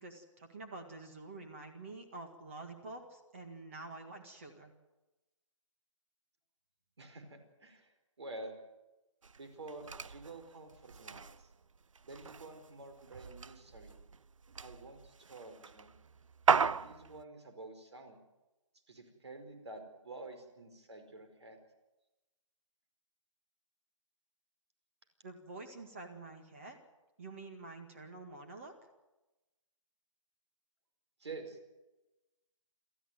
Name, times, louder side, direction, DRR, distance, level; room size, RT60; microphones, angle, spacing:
voice 1, 0.0-4.7 25.2-26.8 27.2-28.8, right 3 dB, 25° right, 4 dB, 1.9 m, -48 dB
voice 2, 7.0-8.5 9.3-11.5 12.0-14.0 14.6-15.9 16.5-18.2 18.9-21.6 31.2-31.6, right 2 dB, 55° right, 7 dB, 5.0 m, -49 dB
sound 1, 9.2-17.2, right 5 dB, 75° right, 0.8 m, -37 dB
27.0 x 14.0 x 9.3 m, 1.1 s
hypercardioid pair, 175°, 17 cm